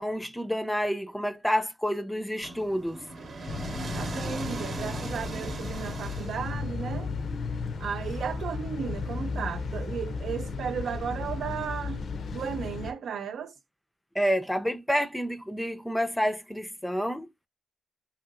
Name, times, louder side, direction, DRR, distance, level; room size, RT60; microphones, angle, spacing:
voice 1, 0.0-3.0 14.2-17.5, equal, 5° left, 0.4 m, -29 dB
sound 1, 2.4-6.8, right 2 dB, 60° right, 0.9 m, -38 dB
voice 2, 3.2-3.5 3.9-7.1 7.8-12.1 12.3-13.6, right 7 dB, 80° right, 0.4 m, -35 dB
sound 2, 3.5-12.9, left 4 dB, 70° left, 0.4 m, -34 dB
2.8 x 2.8 x 2.4 m
cardioid pair, 75°, 0 cm